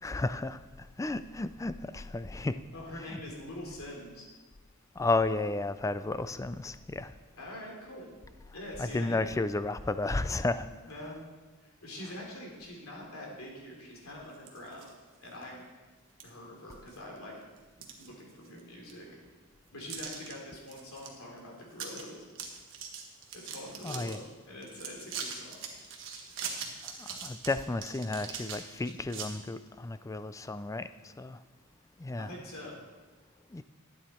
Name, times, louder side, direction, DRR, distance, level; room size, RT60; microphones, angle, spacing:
voice 1, 0.0-2.6 5.0-7.1 8.8-10.7 23.8-24.2 26.8-31.4 32.0-32.3 33.5-33.6, left 2 dB, 15° left, 12 dB, 0.3 m, -33 dB
voice 2, 2.7-4.3 7.4-8.1 8.5-9.2 10.9-11.2 11.6-14.9 15.2-15.6 16.2-17.3 18.0-19.1 19.7-22.3 23.3-25.6 32.2-32.8, left 1 dB, 70° left, -1 dB, 3.1 m, -44 dB
sound 1, 14.3-14.9 15.4-15.5 16.2-16.3 16.7-17.2 17.6-18.6 18.9-19.0 19.9-20.3 20.7-21.1 21.4-21.5 21.7-22.0 22.3-24.2 24.6-29.3, right 6 dB, 60° right, 1.5 m, -41 dB
12.5 x 8.7 x 4.3 m, 1.3 s
head